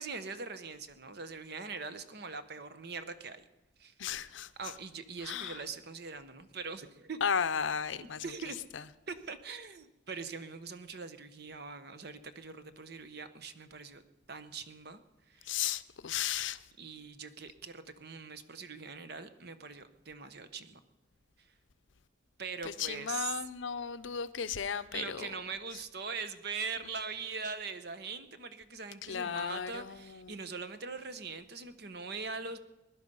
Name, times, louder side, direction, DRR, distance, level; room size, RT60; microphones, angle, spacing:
voice 1, 0.0-3.4 3.8-3.9 4.6-7.2 8.2-8.6 9.1-14.0 14.3-15.0 15.3-15.5 16.8-20.8 21.4-21.5 22.4-23.4 24.9-32.6, right 4 dB, 55° right, 1.0 m, -42 dB
voice 2, 4.0-4.8 5.2-5.6 7.2-8.3 8.7-8.9 15.4-16.7 22.6-25.3 29.0-30.4, left 7 dB, 75° left, 0.6 m, -35 dB
21.5 x 11.0 x 5.5 m
head